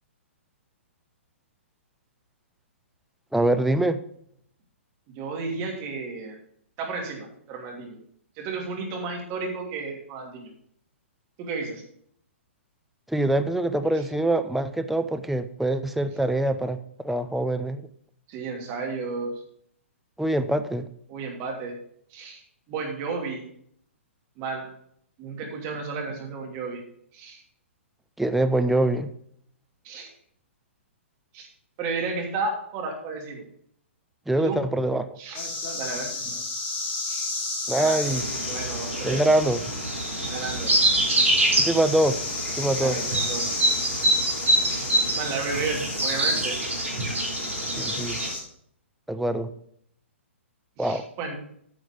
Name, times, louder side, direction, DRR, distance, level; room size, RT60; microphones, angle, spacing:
voice 1, 3.3-4.0 13.1-17.8 20.2-20.9 28.2-29.1 34.3-35.2 37.7-38.2 39.0-39.6 41.6-42.2 42.6-43.0 47.7-48.2 49.1-49.5 50.8-51.0, right 1 dB, ahead, 8 dB, 0.6 m, -24 dB
voice 2, 5.1-6.4 6.8-8.0 8.4-10.5 11.4-11.8 13.9-14.0 18.3-19.3 21.1-21.8 22.1-22.4 22.7-23.4 24.4-24.7 25.2-26.8 27.1-27.4 29.8-30.1 31.3-31.5 31.8-33.4 34.4-34.6 35.2-35.4 35.7-36.2 37.1-37.3 37.7-38.0 38.5-39.3 40.2-40.8 41.0-41.3 42.7-43.5 44.6-46.6 50.8-51.4, right 4 dB, 30° right, 1 dB, 2.9 m, -33 dB
sound 1, 35.3-48.4, left 3 dB, 30° left, 2.7 m, -33 dB
sound 2, 38.0-48.3, right 1 dB, 75° right, 3.3 m, -26 dB
9.9 x 6.3 x 5.2 m, 0.66 s
figure-of-eight pair, 120°, 7 cm